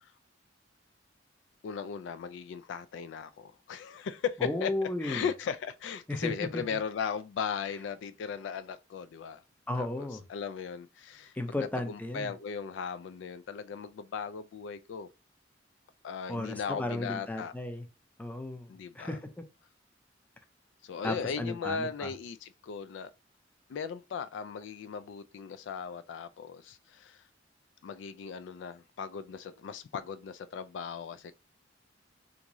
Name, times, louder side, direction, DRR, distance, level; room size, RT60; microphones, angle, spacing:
voice 1, 1.6-4.7 5.0-9.4 9.7-15.1 16.0-17.5 18.7-19.2 20.8-23.1 23.7-27.2 27.8-31.4, left 6 dB, 80° left, 0.3 m, -37 dB
voice 2, 4.4-5.3 6.1-6.6 9.7-10.2 11.3-12.3 16.3-17.8 18.2-18.7 18.9-19.2 21.0-22.1, left 1 dB, 10° left, 0.4 m, -34 dB
3.5 x 2.6 x 3.0 m
head